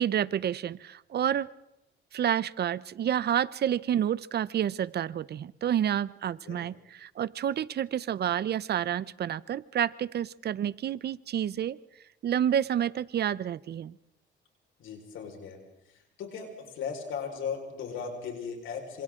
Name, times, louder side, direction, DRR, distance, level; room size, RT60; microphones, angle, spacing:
voice 1, 0.0-1.5 2.1-11.8 12.2-14.0, right 10 dB, 55° right, 19 dB, 0.7 m, -29 dB
voice 2, 14.8-15.6 16.2-19.0, left 6 dB, 80° left, 3 dB, 4.9 m, -37 dB
27.5 x 26.5 x 3.8 m, 0.88 s
cardioid pair, 90°, 20 cm